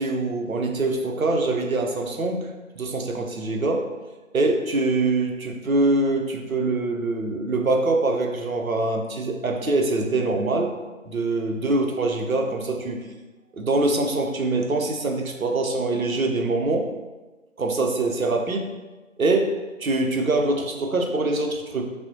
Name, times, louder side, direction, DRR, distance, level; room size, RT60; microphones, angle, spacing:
voice 1, 0.0-3.9 4.3-10.7 11.0-13.1 13.5-16.9 17.6-18.7 19.2-19.5 19.8-21.9, right 2 dB, 85° right, 3 dB, 0.7 m, -24 dB
5.4 x 2.1 x 2.7 m, 1.2 s
figure-of-eight pair, 170°, 41 cm